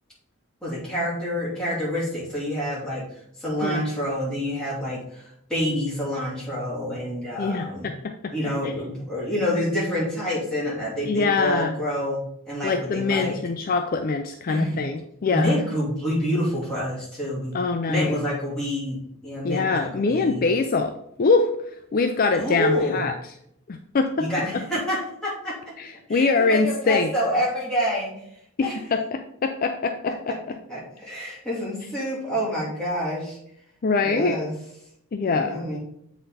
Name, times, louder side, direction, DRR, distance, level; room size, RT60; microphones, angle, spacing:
voice 1, 0.6-7.9 8.3-13.4 14.5-14.8 15.3-17.5 17.9-20.5 22.3-23.1 24.2-25.6 26.1-28.1 28.6-28.7 30.1-30.2 30.7-33.4 34.0-34.5 35.2-35.8, equal, 5° left, -8 dB, 2.9 m, -27 dB
voice 2, 7.4-8.3 8.6-8.7 11.0-11.8 12.6-15.5 17.5-18.2 19.4-20.9 21.2-23.1 23.7-24.3 24.5-24.6 25.8-27.1 28.6-30.6 33.8-34.4 35.1-35.5, left 4 dB, 45° left, 6 dB, 0.4 m, -24 dB
7.7 x 4.1 x 4.1 m, 0.73 s
head